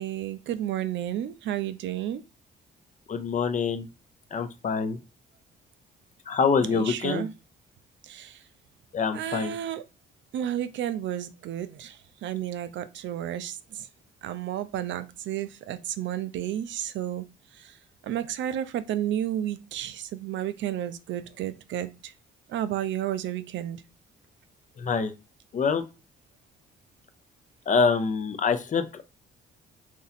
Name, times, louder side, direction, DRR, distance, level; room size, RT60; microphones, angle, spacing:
voice 1, 0.0-2.2 6.6-7.3 8.0-8.4 9.1-9.8 10.3-13.9 14.2-17.3 17.5-17.8 18.0-22.1 22.5-23.8, right 11 dB, 70° right, 0.4 m, -32 dB
voice 2, 3.1-3.9 4.3-5.0 6.3-7.2 8.9-9.5 24.8-25.1 25.5-25.8 27.7-29.1, left 5 dB, 40° left, 0.5 m, -25 dB
2.8 x 2.6 x 4.1 m
cardioid pair, 90°, 20 cm